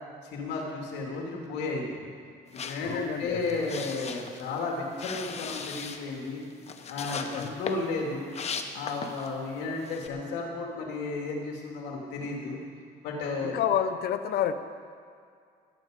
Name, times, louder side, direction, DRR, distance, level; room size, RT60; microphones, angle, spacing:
voice 1, 0.3-2.1 2.6-6.4 6.9-8.3 8.7-12.6 13.0-13.5, left 3 dB, 85° left, -1 dB, 2.7 m, -33 dB
sound 1, 2.5-9.4 9.8-10.1, left 5 dB, 40° left, 1.0 m, -38 dB
voice 2, 2.8-3.6 7.3-7.5 13.4-14.5, left 10 dB, 65° left, 10 dB, 0.9 m, -29 dB
20.5 x 8.4 x 5.2 m, 2.3 s
cardioid pair, 110°, 17 cm